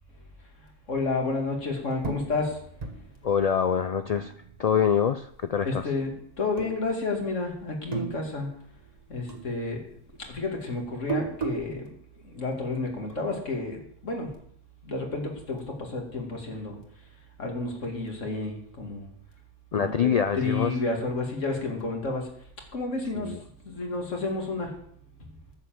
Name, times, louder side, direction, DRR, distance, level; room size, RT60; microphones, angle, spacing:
voice 1, 0.9-2.6 5.6-8.5 9.1-9.8 10.2-11.9 12.3-14.3 14.8-16.8 17.4-19.1 19.7-22.3 22.7-23.4 23.6-24.7, left 3 dB, 80° left, 1 dB, 2.6 m, -31 dB
sound 1, 2.0-4.9 5.2-6.0 6.5-7.4 7.7-9.0 9.3-11.7, right 5 dB, 35° right, 1.3 m, -36 dB
voice 2, 3.2-4.3 4.6-5.9 19.7-20.7 23.1-23.4, left 7 dB, 65° left, 10 dB, 0.4 m, -25 dB
10.5 x 7.0 x 7.7 m, 0.66 s
omnidirectional pair, 1.3 m